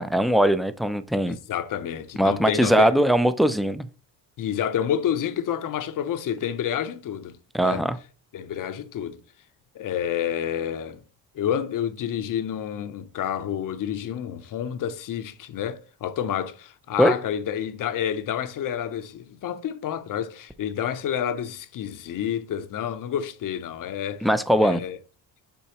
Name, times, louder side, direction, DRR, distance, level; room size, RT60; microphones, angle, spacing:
voice 1, 0.0-1.4 2.2-3.9 7.5-8.0 17.0-17.1 24.2-24.8, equal, ahead, 0.5 m, -20 dB
voice 2, 1.3-2.9 4.4-7.3 7.6-7.8 8.3-9.2 9.7-11.0 11.3-24.3 24.5-25.0, left 9 dB, 50° left, 0.7 m, -29 dB
7.1 x 4.5 x 2.9 m
cardioid pair, 85°, 40 cm